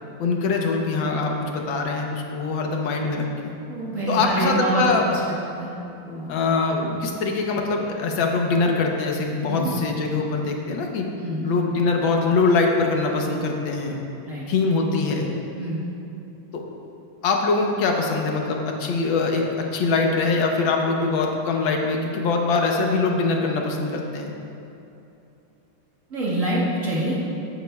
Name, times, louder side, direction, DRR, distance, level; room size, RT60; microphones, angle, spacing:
voice 1, 0.2-3.6 4.1-5.0 6.3-11.1 11.4-14.0 14.5-15.3 16.5-16.6 17.2-24.3, left 4 dB, 85° left, 1 dB, 1.7 m, -23 dB
voice 2, 3.7-5.2 5.5-5.7 6.0-6.3 6.8-7.0 9.5-9.7 11.2-11.5 14.2-14.4 15.5-15.8 26.1-27.2, right 2 dB, 45° right, -7 dB, 1.7 m, -26 dB
15.0 x 8.4 x 2.3 m, 2.8 s
omnidirectional pair, 2.1 m